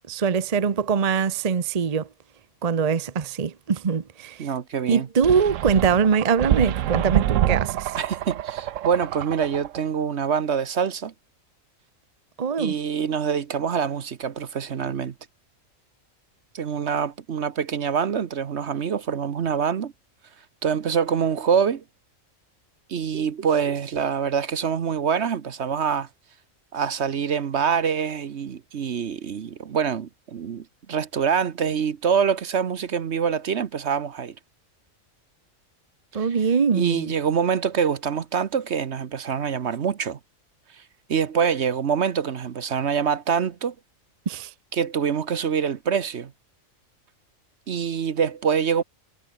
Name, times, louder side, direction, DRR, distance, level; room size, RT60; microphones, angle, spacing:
voice 1, 0.1-2.1 2.6-4.5 4.9-7.9 12.4-12.7 36.1-37.1 44.3-44.5, right 6 dB, 35° right, 0.8 m, -23 dB
voice 2, 4.4-5.1 7.9-11.1 12.6-15.1 16.5-19.9 20.6-21.8 22.9-26.1 26.7-34.3 36.2-36.3 36.7-40.2 41.1-43.7 44.7-46.3 47.7-48.8, right 7 dB, 55° right, 1.2 m, -25 dB
sound 1, 5.2-9.8, right 12 dB, 75° right, 1.0 m, -26 dB
omnidirectional pair, 1.4 m